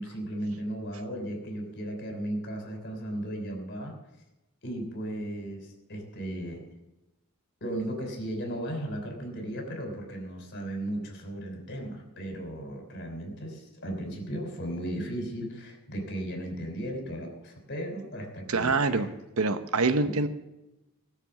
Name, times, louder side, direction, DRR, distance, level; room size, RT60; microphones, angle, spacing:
voice 1, 0.0-4.0 4.6-6.6 7.6-19.1 20.0-20.3, right 1 dB, 50° left, 3 dB, 3.3 m, -36 dB
voice 2, 18.5-20.3, right 3 dB, 70° right, 10 dB, 0.9 m, -26 dB
18.5 x 6.8 x 7.1 m, 0.97 s
head